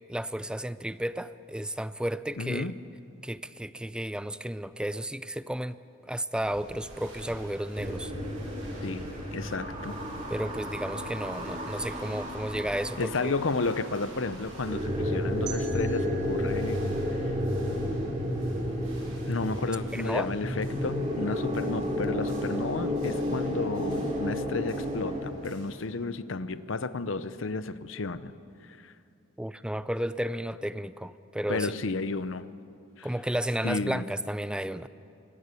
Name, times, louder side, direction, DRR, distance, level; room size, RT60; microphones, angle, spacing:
voice 1, 0.1-2.7 3.2-5.8 6.1-8.1 10.3-13.3 19.9-20.3 29.4-31.7 33.0-34.9, right 1 dB, 5° right, 14 dB, 0.5 m, -33 dB
voice 2, 2.4-2.7 8.8-10.0 13.0-16.8 17.1-17.2 19.3-28.3 28.6-28.9 31.5-32.5 33.0-33.1 33.6-34.0, left 3 dB, 70° left, 14 dB, 0.8 m, -32 dB
sound 1, 6.4-25.8, right 1 dB, 85° right, 6.9 m, -49 dB
sound 2, 7.8-25.3, equal, 30° right, 3.7 m, -32 dB
sound 3, 15.5-18.4, right 7 dB, 60° right, 3.7 m, -47 dB
24.0 x 17.5 x 8.3 m, 2.6 s
head